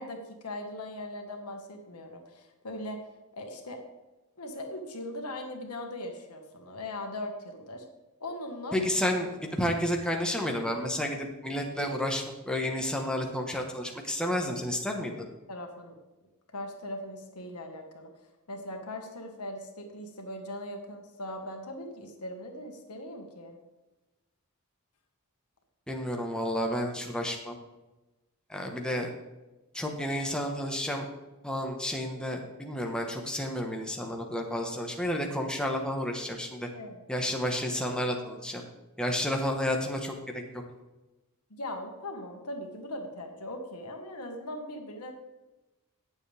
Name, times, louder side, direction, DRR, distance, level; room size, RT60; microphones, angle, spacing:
voice 1, 0.0-3.0 3.3-3.8 4.4-7.8 8.2-8.8 14.4-14.6 15.5-15.9 16.5-18.1 18.5-23.6 36.7-37.1 41.5-45.1, left 1 dB, 85° left, 3 dB, 1.6 m, -40 dB
voice 2, 8.7-15.2 25.9-27.6 28.5-29.1 29.7-31.1 31.4-36.7 37.1-38.6 39.0-40.4, equal, 5° left, 1 dB, 1.3 m, -31 dB
18.0 x 7.2 x 3.5 m, 1.1 s
head